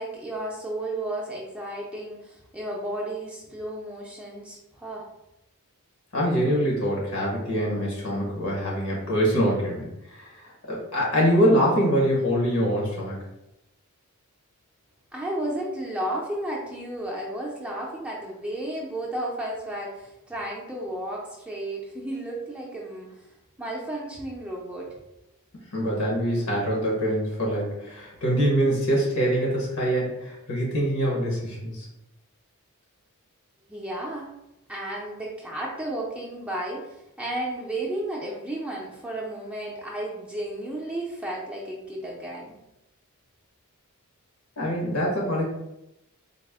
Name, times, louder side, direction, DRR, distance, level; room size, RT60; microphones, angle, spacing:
voice 1, 0.0-5.1 15.1-23.3 23.6-24.9 33.7-34.3 34.7-42.6, right 1 dB, 5° right, -4 dB, 0.5 m, -33 dB
voice 2, 6.1-13.2 25.7-31.9 44.6-45.4, equal, 85° left, -3 dB, 1.0 m, -24 dB
4.0 x 2.0 x 3.5 m, 0.89 s
head